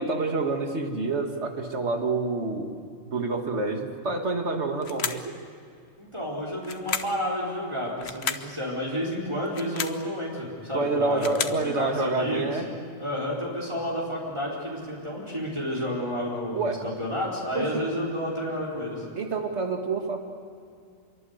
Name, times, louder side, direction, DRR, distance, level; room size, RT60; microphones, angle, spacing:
voice 1, 0.0-2.7 3.1-5.3 10.7-12.7 16.5-16.8 17.5-17.9 19.2-20.2, right 3 dB, 70° right, 4 dB, 2.3 m, -28 dB
sound 1, 4.8-5.3 6.6-7.2 8.0-8.5 9.5-10.0 10.9-11.6, left 6 dB, 65° left, 1.3 m, -32 dB
voice 2, 6.0-12.5 13.0-19.0, equal, 25° right, -5 dB, 4.3 m, -31 dB
26.5 x 23.5 x 8.1 m, 2.4 s
omnidirectional pair, 1.2 m